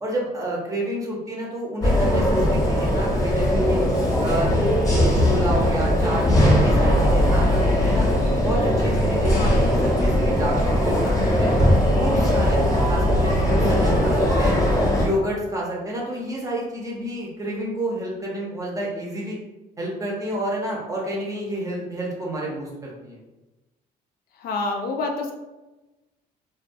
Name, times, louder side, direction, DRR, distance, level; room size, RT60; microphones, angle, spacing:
voice 1, 0.0-3.8 4.2-4.5 4.9-8.1 8.4-11.5 11.9-14.6 14.9-19.4 19.8-23.2, right 1 dB, 20° right, -3 dB, 0.7 m, -29 dB
sound 1, 1.8-15.1, left 1 dB, 20° left, 0.8 m, -20 dB
voice 2, 9.3-9.6 24.4-25.3, left 3 dB, 65° left, 3 dB, 0.4 m, -28 dB
sound 2, 11.6-14.5, equal, 60° right, 0.9 m, -26 dB
2.2 x 2.2 x 2.5 m, 1.1 s
cardioid pair, 110°, 17 cm